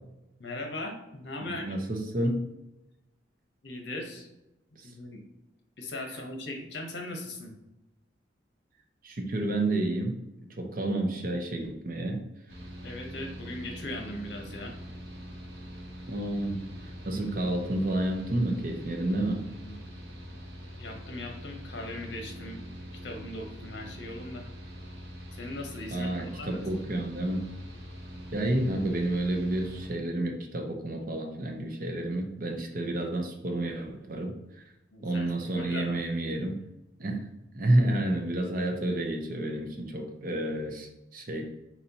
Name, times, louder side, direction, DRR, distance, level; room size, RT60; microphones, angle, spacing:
voice 1, 0.4-1.7 3.6-4.3 4.8-5.2 5.8-7.5 12.8-14.7 19.6-19.8 20.8-22.6 23.0-24.5 25.4-26.6 34.9-36.0, left 1 dB, 70° left, 2 dB, 0.9 m, -39 dB
voice 2, 1.4-2.5 4.8-4.9 9.0-12.2 16.1-16.6 17.1-19.4 25.9-27.4 28.3-34.3 35.0-36.5 37.0-37.2 37.5-41.5, right 1 dB, 50° right, 3 dB, 0.7 m, -30 dB
Mechanical fan, 12.5-29.9, equal, 75° right, 1.0 m, -43 dB
4.2 x 4.2 x 2.8 m, 0.93 s
head